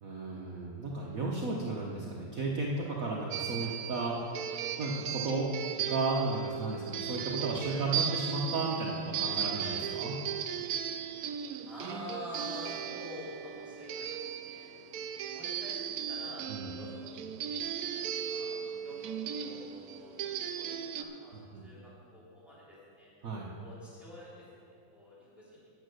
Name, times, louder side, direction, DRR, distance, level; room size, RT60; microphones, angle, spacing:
voice 1, 0.0-4.2 4.8-5.5 5.9-10.2 16.5-16.7 21.3-21.7 23.2-23.5, right 3 dB, 50° right, -3 dB, 1.2 m, -34 dB
sound 1, 3.3-21.0, right 8 dB, 90° right, 0.8 m, -37 dB
voice 2, 11.6-14.7 15.2-21.4 21.6-23.1 23.6-25.7, left 1 dB, ahead, -8 dB, 3.0 m, -48 dB
9.3 x 8.7 x 6.3 m, 2.4 s
omnidirectional pair, 2.2 m